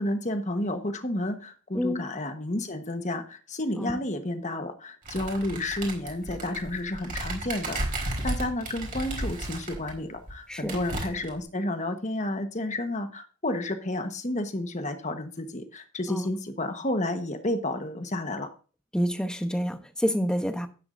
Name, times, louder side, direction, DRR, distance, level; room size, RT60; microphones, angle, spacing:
voice 1, 0.0-18.5, left 1 dB, 30° left, 1.2 m, -31 dB
sound 1, 5.0-9.9 10.3-10.4 10.7-11.4, right 1 dB, 35° right, 4.0 m, -33 dB
voice 2, 18.9-20.7, equal, 5° left, 0.8 m, -28 dB
12.0 x 9.7 x 2.6 m
head